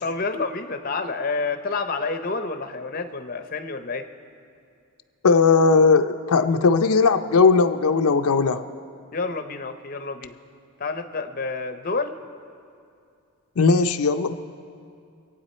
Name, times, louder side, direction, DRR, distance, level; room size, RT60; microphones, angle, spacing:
voice 1, 0.0-4.0 9.1-10.3 10.8-12.2, left 4 dB, 40° left, 8 dB, 0.6 m, -29 dB
voice 2, 5.2-8.6 13.6-14.3, left 4 dB, 85° left, 7 dB, 0.5 m, -18 dB
25.5 x 8.9 x 4.3 m, 2.5 s
head